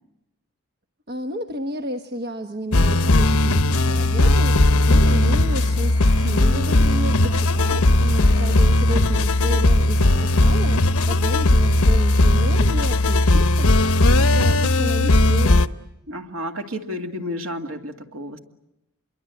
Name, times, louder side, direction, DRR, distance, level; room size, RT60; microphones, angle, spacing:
voice 1, 1.1-15.7, equal, 45° right, 5 dB, 1.2 m, -32 dB
sound 1, 2.7-15.7, left 1 dB, 80° left, 1.0 m, -17 dB
sound 2, 4.9-9.0, equal, 15° right, 1.5 m, -41 dB
voice 2, 16.1-18.4, equal, 65° right, 3 dB, 2.4 m, -31 dB
27.0 x 23.0 x 8.4 m, 0.89 s
head